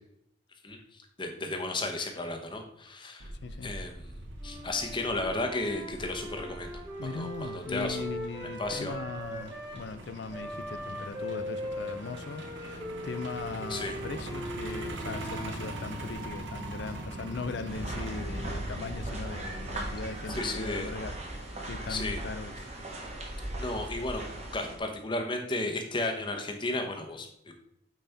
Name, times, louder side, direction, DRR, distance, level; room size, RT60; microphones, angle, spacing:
voice 1, 1.2-3.3 3.6-4.1 4.4-6.7 7.0-8.0 8.6-8.9 13.7-14.0 20.3-20.9 21.9-22.2 23.6-24.2 24.5-27.5, left 2 dB, 25° left, 4 dB, 0.8 m, -33 dB
Truck, 3.2-21.0, right 1 dB, 65° right, 1.1 m, -43 dB
voice 2, 3.4-3.8 7.0-22.7, left 4 dB, 55° left, 12 dB, 0.4 m, -39 dB
Wind instrument woodwind instrument, 4.4-9.8 10.3-16.2, equal, 15° right, 1.0 m, -40 dB
sound 1, 17.7-24.8, right 1 dB, 35° right, 1.2 m, -38 dB
9.0 x 4.2 x 3.4 m, 0.77 s
head